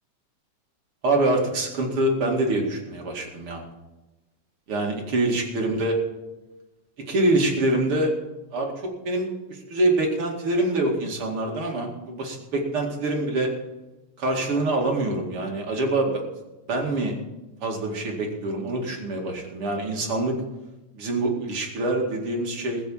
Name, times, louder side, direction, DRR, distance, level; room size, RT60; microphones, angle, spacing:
voice 1, 1.0-3.6 4.7-6.0 7.1-8.1 8.5-13.5 14.2-16.2 16.7-17.1 17.6-20.4 20.9-22.8, right 2 dB, 45° right, 0 dB, 2.8 m, -25 dB
21.0 x 7.2 x 5.6 m, 1.0 s
omnidirectional pair, 4.0 m